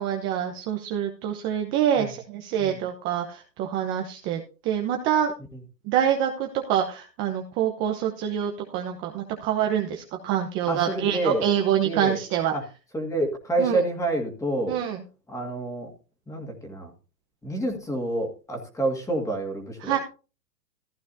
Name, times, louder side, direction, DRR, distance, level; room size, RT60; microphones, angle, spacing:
voice 1, 0.0-5.3 5.8-12.5 13.6-13.8 14.7-15.0 19.8-20.0, right 9 dB, 25° right, 3 dB, 0.9 m, -26 dB
voice 2, 10.7-11.5 11.8-12.2 12.5-12.6 12.9-14.8 15.3-15.9 16.3-16.9 17.4-20.0, right 1 dB, 5° left, 3 dB, 2.0 m, -28 dB
15.0 x 10.0 x 2.7 m, 0.34 s
hypercardioid pair, 140°, 49 cm